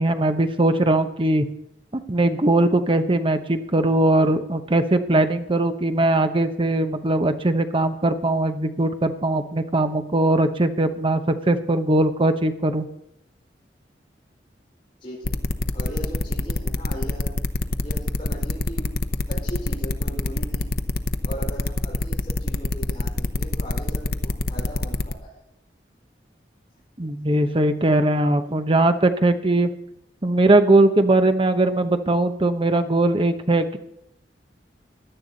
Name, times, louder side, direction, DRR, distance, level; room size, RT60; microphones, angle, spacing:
voice 1, 0.0-1.5 1.9-12.8 27.0-29.7 30.2-33.8, right 2 dB, 30° right, 8 dB, 0.9 m, -20 dB
voice 2, 15.0-15.4 15.7-17.4 17.8-18.9 19.3-20.7 21.2-25.3, right 1 dB, 30° left, -6 dB, 5.0 m, -38 dB
sound 1, 15.2-25.1, left 2 dB, 60° left, 0.9 m, -25 dB
16.5 x 11.5 x 4.0 m, 0.83 s
head